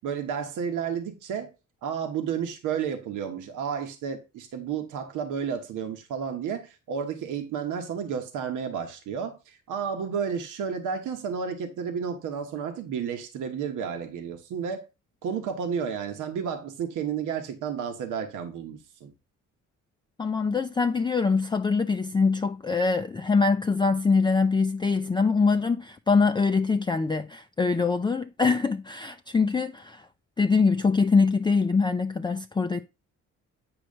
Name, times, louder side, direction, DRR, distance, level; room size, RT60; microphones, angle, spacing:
voice 1, 0.0-1.5 1.8-14.9 15.2-19.1, right 7 dB, 85° right, 1.1 m, -32 dB
voice 2, 20.2-30.1 30.4-32.8, left 4 dB, 15° left, 0.4 m, -23 dB
8.8 x 3.1 x 6.4 m
cardioid pair, 90°, 30 cm